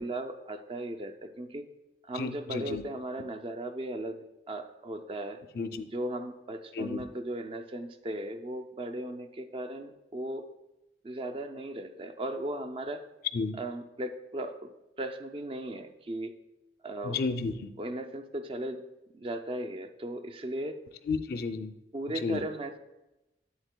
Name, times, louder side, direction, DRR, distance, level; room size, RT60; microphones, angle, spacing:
voice 1, 0.0-1.7 2.1-4.2 4.5-5.4 5.9-10.5 11.0-13.0 13.6-14.7 15.0-16.3 16.8-17.2 17.8-18.8 19.1-20.8 21.9-22.8, right 1 dB, 30° right, 8 dB, 0.4 m, -37 dB
voice 2, 2.2-2.8 5.6-5.8 6.7-7.0 13.3-13.6 17.0-17.7 21.1-21.7 22.2-22.4, left 4 dB, 60° left, 9 dB, 0.4 m, -32 dB
8.0 x 7.9 x 2.2 m, 0.96 s
head